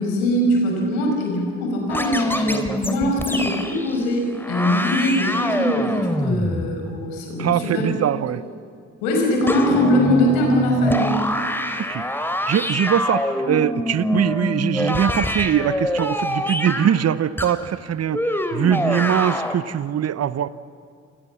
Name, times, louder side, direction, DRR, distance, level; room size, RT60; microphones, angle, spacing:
voice 1, 0.0-7.9 9.0-11.1, left 1 dB, 80° left, 1 dB, 5.6 m, -22 dB
sound 1, 1.9-4.1 4.3-6.7 9.5-16.9 17.4-17.5 18.1-19.6, left 1 dB, 5° left, 3.3 m, -25 dB
voice 2, 7.4-8.4 11.9-12.0 12.5-20.5, right 9 dB, 45° right, 17 dB, 0.9 m, -22 dB
27.5 x 22.5 x 7.3 m, 2.4 s
hypercardioid pair, 40°, 36 cm